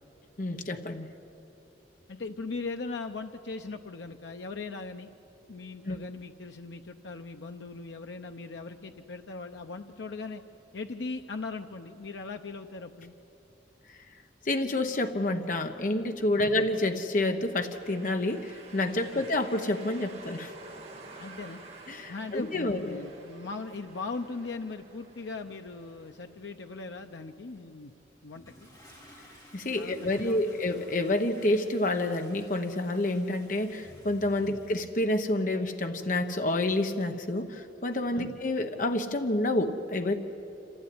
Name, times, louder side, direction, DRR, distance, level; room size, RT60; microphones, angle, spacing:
voice 1, 0.4-1.1 5.9-6.0 14.4-20.5 21.9-23.0 29.5-40.2, left 1 dB, 45° left, 6 dB, 1.0 m, -28 dB
voice 2, 2.1-5.1 5.5-10.4 10.7-13.2 16.4-16.7 19.1-19.3 21.2-21.6 22.1-27.9 28.2-28.4 29.7-30.6 34.4-34.6 38.1-38.3, left 3 dB, 80° left, 5 dB, 0.7 m, -39 dB
sound 1, 17.1-26.9, right 3 dB, 35° right, 2.1 m, -50 dB
Toilet flush, 28.3-35.1, equal, 20° left, 4.4 m, -54 dB
26.0 x 15.5 x 9.6 m, 3.0 s
head